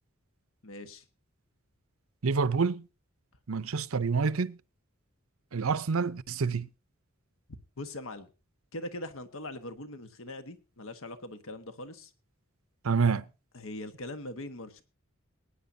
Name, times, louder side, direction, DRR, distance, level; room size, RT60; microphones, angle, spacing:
voice 1, 0.6-1.0 7.8-8.3 8.7-12.1 13.5-14.8, left 1 dB, 75° left, 1.4 m, -41 dB
voice 2, 2.2-2.8 3.5-4.6 5.5-6.7 12.8-13.2, right 5 dB, 85° right, 0.7 m, -27 dB
22.5 x 10.0 x 2.7 m
head